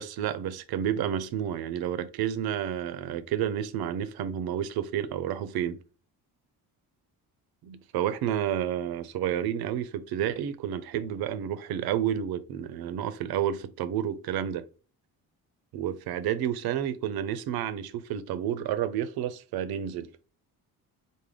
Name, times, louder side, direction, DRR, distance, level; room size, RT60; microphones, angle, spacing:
voice 1, 0.0-5.8 7.6-14.6 15.7-20.1, right 10 dB, 75° right, 0.5 m, -30 dB
3.4 x 2.1 x 3.5 m
cardioid pair, 85°, 38 cm